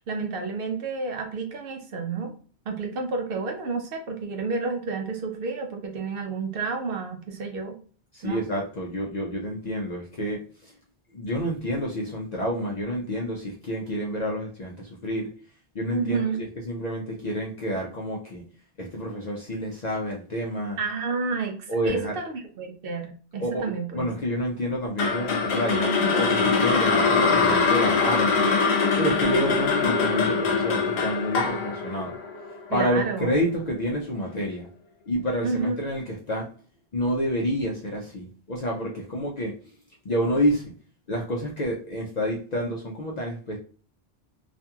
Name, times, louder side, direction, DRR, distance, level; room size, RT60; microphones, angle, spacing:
voice 1, 0.1-2.3 2.7-7.8 8.2-8.4 15.9-16.4 20.8-24.1 32.7-33.5 35.4-35.8, right 4 dB, 65° right, 4 dB, 0.7 m, -30 dB
voice 2, 8.1-10.7 11.1-15.3 15.7-18.4 18.8-20.8 21.7-22.2 23.4-28.5 29.0-32.2 32.7-34.7 35.1-36.5 36.9-39.5 40.0-40.7 41.1-43.6, equal, 55° left, -2 dB, 0.5 m, -29 dB
sound 1, 25.0-33.2, left 4 dB, 70° left, 0.9 m, -23 dB
2.8 x 2.5 x 2.2 m, 0.42 s
omnidirectional pair, 1.1 m